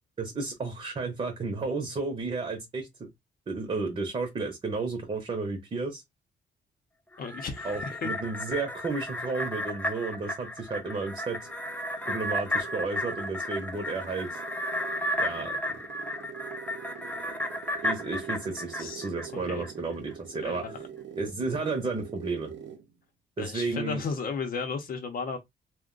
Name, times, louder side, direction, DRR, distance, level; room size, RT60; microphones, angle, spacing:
voice 1, 0.2-3.1 3.5-6.0 7.6-11.4 12.1-14.4 15.2-15.6 17.8-20.6 21.2-22.5 23.4-24.0, right 3 dB, 30° right, 0.7 m, -32 dB
sound 1, 7.1-19.7 20.1-20.2, left 1 dB, 10° left, 0.5 m, -33 dB
voice 2, 7.2-8.1 18.8-19.0 19.5-19.6 20.4-20.8 23.4-25.4, left 5 dB, 50° left, 0.7 m, -34 dB
sound 2, 11.2-22.9, right 8 dB, 75° right, 0.8 m, -45 dB
2.4 x 2.1 x 3.7 m
cardioid pair, 125°, 19 cm